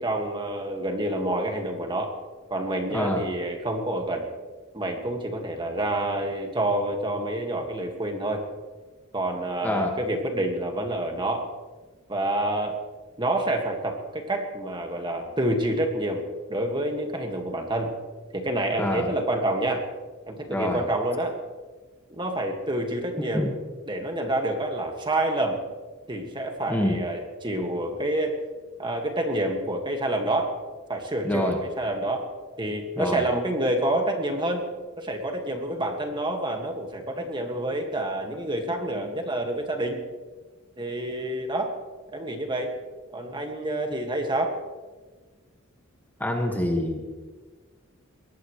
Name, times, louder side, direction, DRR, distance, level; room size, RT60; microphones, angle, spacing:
voice 1, 0.0-2.1 2.5-4.2 4.7-8.4 9.1-11.5 12.1-12.8 13.2-16.2 16.5-17.9 18.3-19.8 20.3-21.4 22.1-23.5 23.9-25.6 26.1-28.4 28.8-30.5 30.9-32.3 32.6-34.6 35.0-40.0 40.8-41.7 42.1-42.7 43.1-44.5, right 1 dB, 25° right, 3 dB, 2.0 m, -28 dB
voice 2, 9.6-9.9 18.8-19.1 20.5-20.8 23.2-23.5 26.7-27.0 31.2-31.6 33.0-33.2 46.2-47.0, left 1 dB, 10° left, 2 dB, 1.8 m, -26 dB
23.0 x 19.0 x 3.3 m, 1.4 s
head